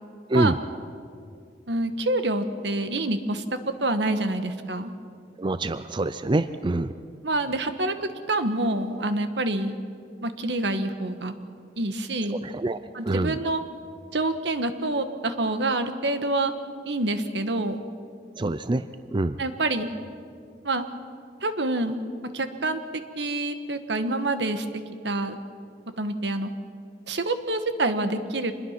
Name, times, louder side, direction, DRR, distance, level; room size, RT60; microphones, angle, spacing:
voice 1, 1.7-3.4 3.8-4.9 7.2-7.9 8.3-9.8 10.2-11.3 11.8-12.4 12.9-13.6 14.1-16.5 16.9-17.8 19.4-19.9 20.6-20.9 21.4-22.0 22.3-22.8 23.2-24.6 25.0-25.4 26.0-26.5 27.1-28.5, right 2 dB, 75° right, 9 dB, 1.4 m, -27 dB
voice 2, 5.4-6.9 12.3-12.8 13.1-13.4 18.4-18.9 19.1-19.4, right 2 dB, 25° right, 12 dB, 0.5 m, -25 dB
26.0 x 21.0 x 5.9 m, 2.3 s
head